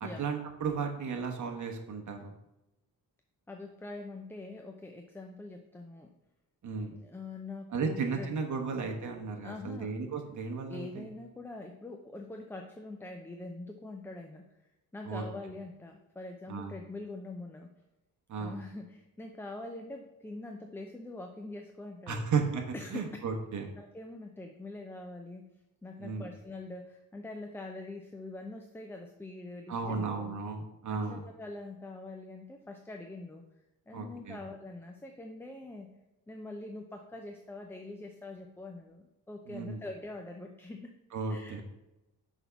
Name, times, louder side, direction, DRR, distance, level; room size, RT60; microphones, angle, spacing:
voice 1, 0.0-2.3 6.6-6.9 7.7-11.1 15.1-15.2 16.5-16.7 18.3-18.6 22.1-22.6 22.9-23.7 26.0-26.3 29.7-31.2 33.9-34.4 39.5-39.8 41.1-41.6, right 5 dB, 50° right, 3 dB, 1.1 m, -34 dB
voice 2, 3.5-6.1 6.9-8.3 9.4-10.1 10.6-14.6 14.9-17.7 18.4-22.3 22.7-23.2 23.7-25.5 25.8-30.3 30.9-33.4 33.9-35.9 36.3-41.0 41.3-41.6, left 2 dB, 5° left, 3 dB, 0.5 m, -44 dB
6.1 x 3.6 x 5.7 m, 0.92 s
cardioid pair, 120°, 37 cm